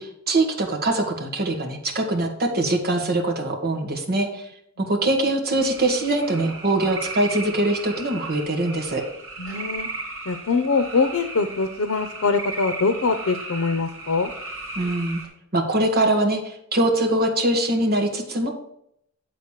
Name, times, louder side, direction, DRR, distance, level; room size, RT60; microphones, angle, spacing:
voice 1, 0.0-4.5 4.8-9.0 14.7-15.2 15.5-18.5, right 1 dB, 50° right, 3 dB, 1.4 m, -23 dB
sound 1, 5.6-15.3, right 3 dB, 70° right, 2.2 m, -36 dB
voice 2, 9.4-9.9 10.3-14.3, left 4 dB, 90° left, 8 dB, 0.7 m, -23 dB
8.5 x 4.0 x 6.5 m, 0.73 s
head